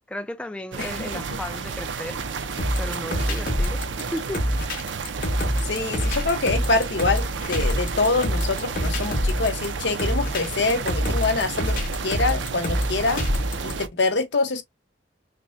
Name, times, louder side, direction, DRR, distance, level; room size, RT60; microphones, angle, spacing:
voice 1, 0.1-2.2 2.8-4.4, left 1 dB, 5° left, 0.4 m, -34 dB
sound 1, 0.7-13.9, right 5 dB, 85° right, 0.6 m, -32 dB
voice 2, 0.8-1.4 5.6-13.2 13.6-14.6, left 3 dB, 70° left, 0.9 m, -25 dB
sound 2, 2.6-13.7, equal, 50° left, 1.8 m, -26 dB
5.9 x 2.1 x 2.7 m
head